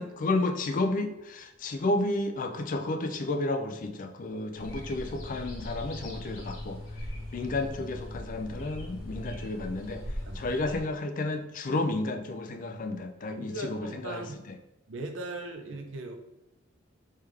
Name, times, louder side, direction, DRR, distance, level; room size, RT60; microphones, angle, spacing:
voice 1, 0.0-6.8 7.3-10.0 10.4-14.2, left 2 dB, 40° left, 7 dB, 0.4 m, -31 dB
sound 1, 4.6-10.8, left 1 dB, 70° left, 1.2 m, -40 dB
voice 2, 10.2-10.6 13.2-14.4 14.9-16.1, right 2 dB, 65° right, 5 dB, 0.5 m, -39 dB
3.4 x 3.3 x 3.3 m, 0.94 s
head